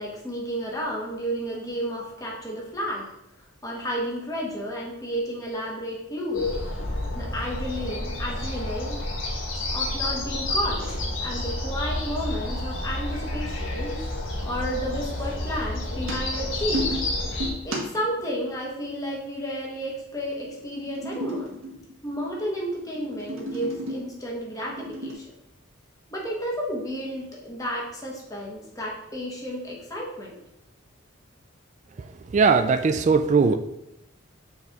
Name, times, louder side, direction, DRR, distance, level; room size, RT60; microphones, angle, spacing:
voice 1, 0.0-3.1 3.6-6.6 7.1-9.0 9.7-14.0 14.4-16.9 17.6-21.6 22.0-25.3 26.1-30.4, equal, 15° left, -3 dB, 1.3 m, -32 dB
sound 1, 6.3-17.5, left 2 dB, 75° left, 1.5 m, -30 dB
sound 2, 15.9-18.2 20.5-22.3 22.8-24.1 24.6-25.1, equal, 85° right, 1.6 m, -33 dB
voice 2, 32.3-33.6, right 5 dB, 35° right, 9 dB, 0.3 m, -19 dB
7.0 x 4.1 x 3.6 m, 0.84 s
head